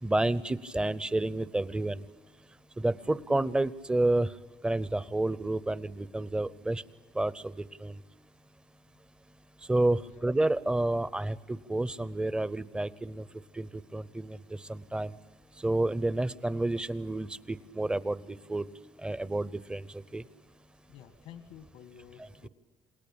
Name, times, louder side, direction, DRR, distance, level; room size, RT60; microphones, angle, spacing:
voice 1, 0.0-2.0 2.8-4.4 4.6-6.8 7.1-8.0 9.7-13.3 13.5-15.2 15.6-18.7 19.0-20.2 22.2-22.5, right 2 dB, 10° right, 18 dB, 0.7 m, -30 dB
voice 2, 20.9-22.5, left 9 dB, 90° left, 10 dB, 1.7 m, -51 dB
28.0 x 20.5 x 8.7 m, 1.3 s
cardioid pair, 140°, 10 cm